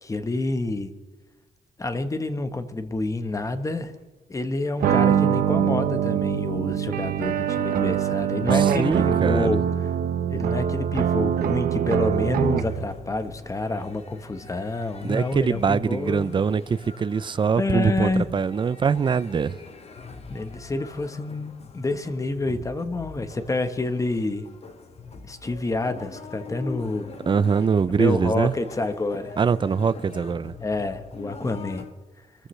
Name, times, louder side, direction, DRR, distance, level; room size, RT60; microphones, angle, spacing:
voice 1, 0.0-0.9 1.8-3.9 4.3-9.9 10.3-16.4 17.6-18.3 20.3-24.5 25.3-27.1 28.0-29.4 30.6-31.8, left 2 dB, 20° left, 1.2 m, -28 dB
sound 1, 4.8-12.8, right 9 dB, 90° right, 1.0 m, -23 dB
voice 2, 8.5-9.6 15.0-19.6 27.3-28.5 29.4-30.5, right 6 dB, 35° right, 0.5 m, -23 dB
sound 2, 12.6-31.9, left 5 dB, 45° left, 1.3 m, -43 dB
24.0 x 14.0 x 3.3 m
cardioid pair, 110°, 15 cm